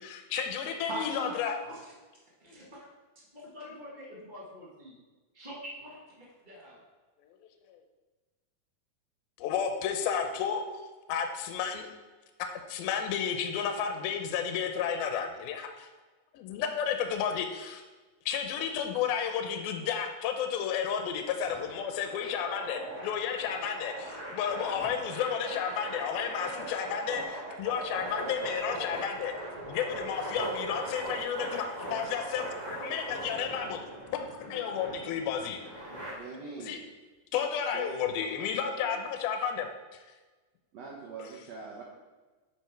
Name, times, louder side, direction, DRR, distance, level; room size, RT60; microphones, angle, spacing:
voice 1, 0.0-1.6 9.4-10.6 11.1-11.9 12.7-15.9 16.3-17.8 18.3-29.3 29.7-33.8 34.2-35.6 36.6-36.8 37.3-39.7, left 7 dB, 75° left, 5 dB, 2.4 m, -32 dB
voice 2, 0.9-1.4 1.6-1.8 2.4-2.9 3.3-5.0 5.3-6.8, right 1 dB, 35° right, -6 dB, 0.7 m, -43 dB
sound 1, 21.4-36.1, right 1 dB, 20° right, 1.5 m, -40 dB
voice 3, 36.1-36.8 37.6-39.1 40.7-41.8, right 4 dB, 80° right, -4 dB, 1.5 m, -44 dB
7.8 x 5.4 x 4.6 m, 1.2 s
omnidirectional pair, 4.7 m